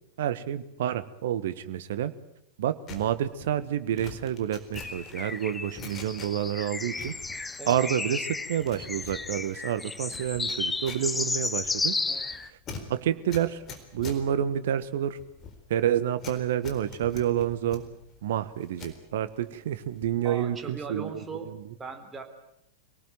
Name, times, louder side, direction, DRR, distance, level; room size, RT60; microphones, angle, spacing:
voice 1, 0.2-2.1 2.6-7.1 7.7-11.9 12.9-13.6 13.9-15.2 15.7-17.8 18.2-21.1 21.5-21.6, right 10 dB, 55° right, 13 dB, 1.4 m, -29 dB
sound 1, 2.9-6.6 6.9-8.1 8.4-19.0 19.4-20.3 20.5-20.8, left 5 dB, 30° left, 4.1 m, -45 dB
sound 2, 4.7-12.5, left 3 dB, 10° left, 0.9 m, -33 dB
voice 2, 20.2-22.2, right 4 dB, 15° right, 5 dB, 3.7 m, -39 dB
25.0 x 18.5 x 9.1 m, 0.77 s
figure-of-eight pair, 90°, 0 cm